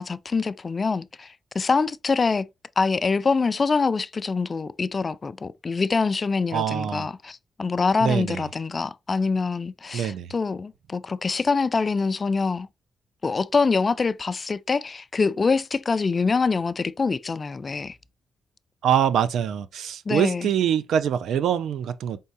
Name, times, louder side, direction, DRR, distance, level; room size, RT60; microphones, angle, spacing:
voice 1, 0.0-2.4 2.8-12.7 13.2-18.0 20.1-20.5, left 4 dB, 35° left, 0.3 m, -25 dB
voice 2, 6.5-7.1 8.0-8.5 9.9-10.3 18.8-22.2, right 9 dB, 85° right, 0.4 m, -24 dB
5.3 x 3.6 x 2.7 m
cardioid pair, 90°, 0 cm